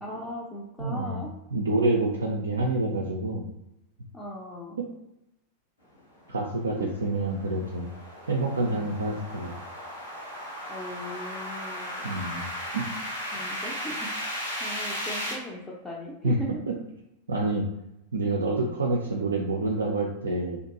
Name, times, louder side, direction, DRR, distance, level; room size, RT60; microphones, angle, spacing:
voice 1, 0.0-1.3 4.1-4.8 6.8-6.9 8.7-8.9 10.7-12.1 13.3-14.1 14.6-16.5 18.5-18.7, equal, 10° left, -6 dB, 0.5 m, -38 dB
voice 2, 0.8-1.2 1.5-3.5 6.3-7.9 8.3-9.5 12.0-12.4 12.7-12.9 16.2-16.4 16.7-16.8 17.3-17.6 18.1-20.6, right 2 dB, 70° right, -2 dB, 0.3 m, -27 dB
sound 1, 6.3-15.4, equal, 80° left, 0.9 m, -36 dB
2.5 x 2.5 x 2.5 m, 0.89 s
figure-of-eight pair, 90°, 0 cm